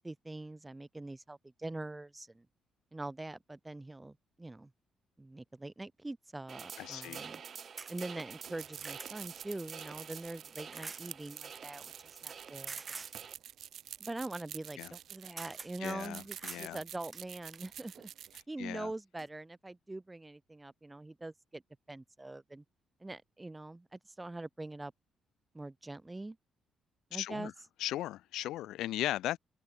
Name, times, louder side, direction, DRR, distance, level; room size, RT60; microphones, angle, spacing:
voice 1, 0.0-2.4 2.9-4.7 5.2-7.4 7.9-12.8 14.0-18.1 18.5-21.6 21.9-22.6 23.0-24.9 25.5-26.4 27.1-27.5, right 2 dB, 15° right, 1.7 m, -43 dB
sound 1, 6.5-13.3, right 7 dB, 50° right, 3.2 m, -48 dB
voice 2, 6.8-7.2 14.8-14.9 15.8-16.8 18.6-18.9 27.1-27.5 27.8-29.4, left 14 dB, 85° left, 1.3 m, -37 dB
sound 2, 7.8-7.9 8.5-9.1 10.7-11.0 12.7-13.1 14.9-15.0 15.4-15.7 16.3-16.7 17.1-17.7 18.7-18.8 19.2-19.3, right 4 dB, 30° right, 3.1 m, -45 dB
sound 3, 8.3-18.4, right 10 dB, 70° right, 0.5 m, -49 dB
open air
cardioid pair, 90°, 0 cm